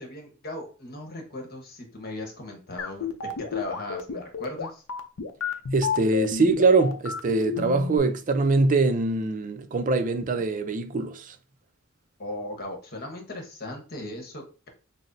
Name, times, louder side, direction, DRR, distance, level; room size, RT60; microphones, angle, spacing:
voice 1, 0.0-4.8 12.2-14.7, left 1 dB, 50° left, 1.0 m, -37 dB
sound 1, 2.8-8.0, left 7 dB, 85° left, 0.5 m, -30 dB
voice 2, 5.7-11.4, right 3 dB, 40° right, 0.4 m, -23 dB
5.8 x 2.0 x 2.6 m
head